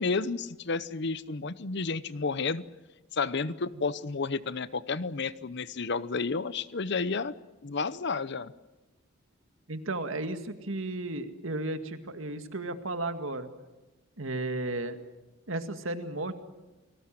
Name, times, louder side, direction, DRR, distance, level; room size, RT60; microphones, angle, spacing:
voice 1, 0.0-2.6 3.1-7.3 7.6-8.5, left 4 dB, 55° left, 17 dB, 0.8 m, -31 dB
voice 2, 9.7-13.5 14.2-15.0 15.5-16.3, right 2 dB, 75° right, 8 dB, 2.0 m, -34 dB
29.5 x 19.5 x 7.6 m, 1.1 s
head